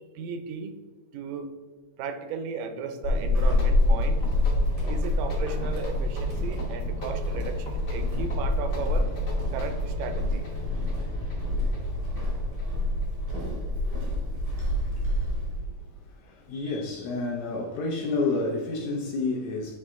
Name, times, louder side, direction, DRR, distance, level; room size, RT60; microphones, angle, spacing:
voice 1, 0.2-0.7 1.1-1.5 2.0-4.2 4.9-9.1 9.5-10.5 15.7-15.8, right 5 dB, 80° right, 8 dB, 2.1 m, -35 dB
Walk footsteps / Squeak, 3.0-15.7, left 1 dB, 60° right, 0.5 m, -27 dB
sound 1, 3.3-13.6, equal, 55° left, 0.9 m, -44 dB
voice 2, 14.8-19.8, left 3 dB, 75° left, 0 dB, 1.8 m, -31 dB
9.1 x 3.1 x 3.6 m, 1.5 s
omnidirectional pair, 3.7 m